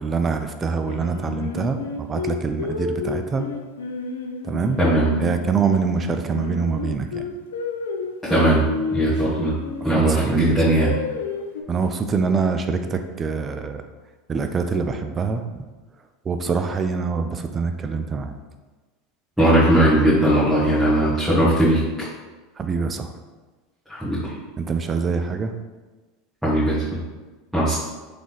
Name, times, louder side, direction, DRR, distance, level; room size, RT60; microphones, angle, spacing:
voice 1, 0.0-3.5 4.4-4.8 5.2-7.3 9.8-10.4 11.7-13.8 14.3-15.4 16.3-18.4 22.6-23.1 24.6-25.5, right 5 dB, 25° right, 7 dB, 0.4 m, -25 dB
Singing, 0.9-5.5 5.9-9.9 10.4-11.6, left 4 dB, 85° left, 0.4 m, -30 dB
voice 2, 4.8-5.1 8.2-8.6 8.9-9.5 9.8-11.0 19.4-21.8 23.9-24.3 26.4-27.0 27.5-27.7, right 1 dB, 5° right, -11 dB, 1.5 m, -18 dB
3.6 x 3.3 x 3.9 m, 1.3 s
hypercardioid pair, 95°, 0 cm